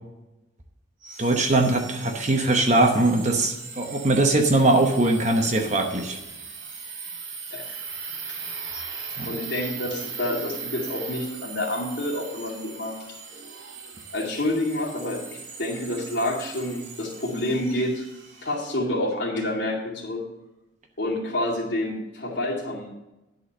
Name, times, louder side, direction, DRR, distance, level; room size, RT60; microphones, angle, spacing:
sound 1, 1.0-18.7, right 5 dB, 80° right, 2.7 m, -39 dB
voice 1, 1.2-6.2 9.2-9.3, right 2 dB, 40° right, 3 dB, 0.9 m, -21 dB
voice 2, 9.3-13.0 14.1-18.1 18.4-20.2 21.0-22.9, left 1 dB, 70° left, -5 dB, 2.4 m, -28 dB
10.5 x 4.2 x 6.6 m, 0.99 s
head